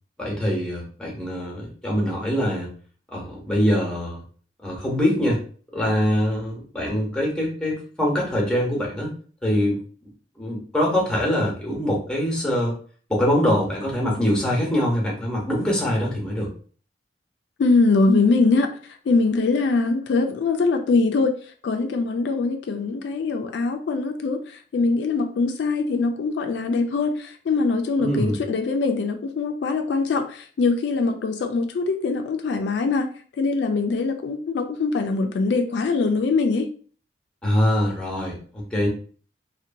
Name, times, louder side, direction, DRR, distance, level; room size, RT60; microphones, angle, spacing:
voice 1, 0.2-2.7 3.1-4.2 4.6-5.4 5.7-9.1 9.4-10.1 10.4-12.7 13.1-16.5 28.0-28.4 37.4-38.9, equal, 5° left, -3 dB, 0.8 m, -23 dB
voice 2, 17.6-18.7 19.1-21.3 21.6-33.1 33.4-36.7, left 3 dB, 75° left, 6 dB, 0.3 m, -22 dB
2.7 x 2.1 x 2.5 m, 0.43 s
head